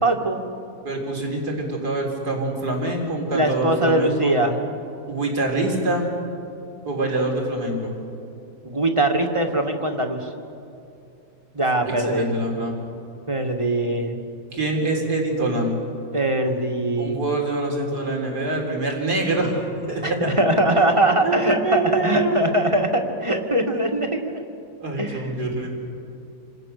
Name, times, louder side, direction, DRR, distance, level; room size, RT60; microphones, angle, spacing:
voice 1, 0.0-0.5 3.3-4.6 8.6-10.3 11.5-12.3 13.3-14.2 16.1-17.3 20.0-24.4 25.0-25.4, right 1 dB, 20° right, 2 dB, 2.1 m, -22 dB
voice 2, 0.8-4.3 5.1-6.1 6.9-7.9 11.9-12.8 14.5-15.8 17.0-20.2 21.2-22.4 24.8-25.7, right 2 dB, 85° right, 0 dB, 4.3 m, -25 dB
29.0 x 27.0 x 6.8 m, 2.7 s
omnidirectional pair, 1.7 m